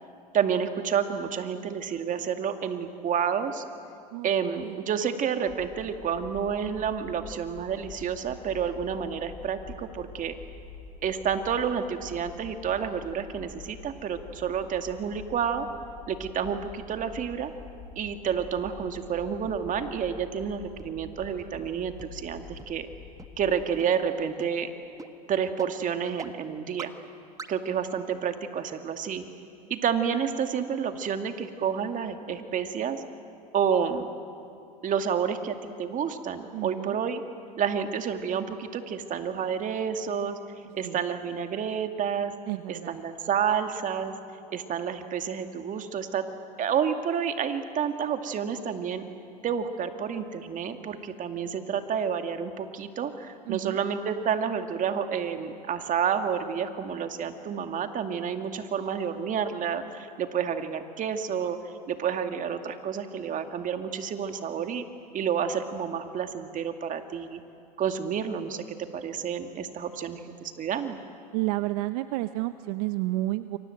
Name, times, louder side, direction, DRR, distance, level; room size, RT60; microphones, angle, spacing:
voice 1, 0.3-3.6 4.2-10.4 11.0-15.7 16.1-17.5 18.0-22.9 23.4-24.7 25.3-26.9 27.5-29.2 29.7-33.0 33.5-34.1 34.8-37.2 37.6-40.4 40.7-42.3 42.7-44.1 44.5-46.3 46.6-49.0 49.4-61.6 61.9-64.9 65.1-67.4 67.8-71.0, right 7 dB, 40° right, 6 dB, 2.3 m, -29 dB
voice 2, 4.1-4.8 36.5-37.0 40.8-41.0 42.5-43.0 53.5-53.8 71.3-73.6, right 18 dB, 65° right, 12 dB, 0.9 m, -31 dB
Rumble Bass, 5.4-23.6, left 5 dB, 40° left, 4.6 m, -47 dB
sound 1, 20.8-20.9 21.4-21.5 22.0-22.1 22.6-22.7 23.2-23.3 23.8-23.9 24.4-24.5 25.0-25.1 25.6-25.7 26.2-26.3 26.8-26.9 27.4-27.5, right 4 dB, 15° right, 1.6 m, -40 dB
29.5 x 24.0 x 7.9 m, 2.6 s
hypercardioid pair, 90°, 21 cm